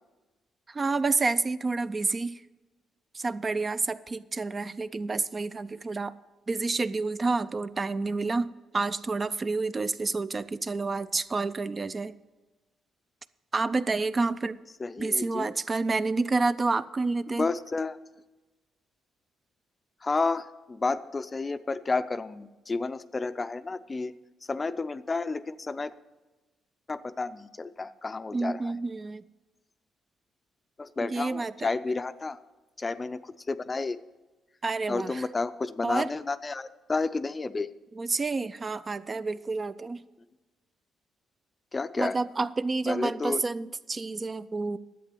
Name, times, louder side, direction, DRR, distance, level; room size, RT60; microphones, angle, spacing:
voice 1, 0.7-2.4 3.1-6.1 6.5-12.1 13.5-14.6 15.0-17.5 28.3-29.2 31.0-31.7 34.6-35.2 35.8-36.1 38.0-40.0 42.0-44.8, right 3 dB, 30° right, 13 dB, 0.4 m, -29 dB
voice 2, 14.8-15.5 17.3-18.0 20.0-24.2 24.5-25.9 26.9-28.7 30.8-32.4 32.8-34.0 34.9-37.7 41.7-42.2 42.9-43.4, left 3 dB, 25° left, 13 dB, 0.5 m, -31 dB
11.0 x 8.2 x 6.9 m, 1.2 s
cardioid pair, 90°, 0 cm